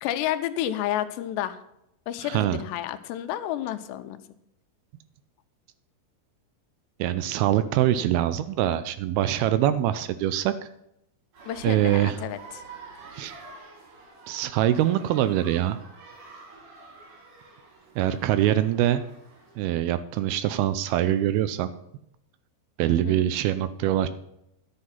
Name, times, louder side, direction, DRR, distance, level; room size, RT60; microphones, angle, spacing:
voice 1, 0.0-1.6 2.1-4.2 11.5-12.6 22.8-23.2, left 12 dB, 90° left, 10 dB, 2.9 m, -30 dB
voice 2, 2.2-2.6 7.0-10.5 11.6-12.2 13.1-13.4 14.3-15.8 18.0-19.0 19.6-21.7 22.8-24.1, right 12 dB, 85° right, 12 dB, 2.3 m, -24 dB
sound 1, 11.3-19.6, right 3 dB, 55° right, 3.5 m, -47 dB
11.5 x 7.8 x 5.7 m, 0.81 s
omnidirectional pair, 4.9 m